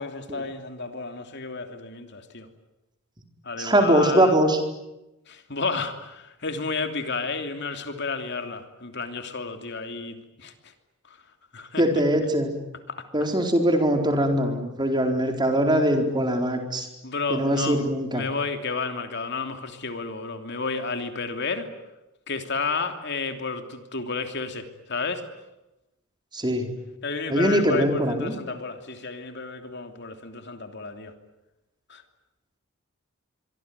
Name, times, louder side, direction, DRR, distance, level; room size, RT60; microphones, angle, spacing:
voice 1, 0.0-2.5 3.4-4.4 5.3-10.5 11.1-11.2 11.5-11.8 12.9-13.0 17.0-17.8 18.1-21.7 22.3-25.2 27.0-31.1 31.9-32.0, left 4 dB, 55° left, 7 dB, 3.0 m, -31 dB
voice 2, 3.6-4.6 11.8-12.5 13.1-16.9 17.3-18.3 26.3-26.7 27.3-28.4, right 1 dB, 20° right, 4 dB, 4.4 m, -22 dB
25.0 x 24.5 x 9.7 m, 0.95 s
head